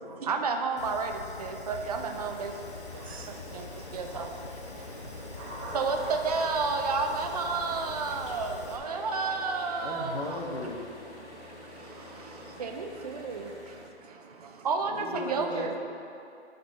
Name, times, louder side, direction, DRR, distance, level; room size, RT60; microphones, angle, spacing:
voice 1, 0.2-1.1 1.4-2.5 3.5-3.6 3.9-4.3 5.7-6.0 6.2-10.4 12.6-13.5 14.6-15.8, right 4 dB, 35° right, 4 dB, 0.5 m, -31 dB
Fire, 0.8-8.8, left 4 dB, 25° left, 0.5 m, -44 dB
sound 1, 1.7-13.9, left 1 dB, 85° left, 1.9 m, -48 dB
voice 2, 2.9-4.0 4.7-5.8 11.2-12.6 13.5-14.7, right 4 dB, 65° right, 2 dB, 1.1 m, -52 dB
sound 2, 5.4-11.0, equal, 10° right, 0.8 m, -45 dB
voice 3, 9.8-10.8 14.9-15.8, left 2 dB, 65° left, 0 dB, 1.4 m, -36 dB
12.0 x 4.2 x 4.1 m, 2.7 s
hypercardioid pair, 155°, 34 cm